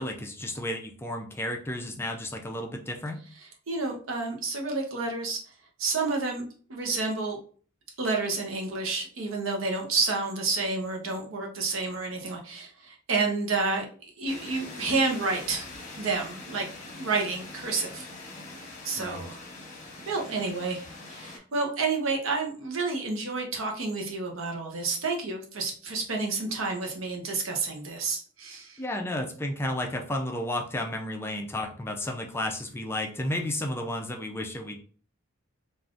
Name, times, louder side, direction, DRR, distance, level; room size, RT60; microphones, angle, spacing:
voice 1, 0.0-3.2 19.0-19.2 28.8-34.8, left 1 dB, 10° left, 2 dB, 0.4 m, -32 dB
voice 2, 3.7-5.4 5.8-7.4 8.0-13.9 14.2-15.7 16.0-16.7 17.0-18.1 18.8-19.4 20.1-28.8, right 3 dB, 75° right, 1 dB, 0.8 m, -30 dB
sound 1, 14.3-21.4, left 2 dB, 40° left, 0.9 m, -43 dB
3.4 x 2.5 x 2.5 m, 0.42 s
head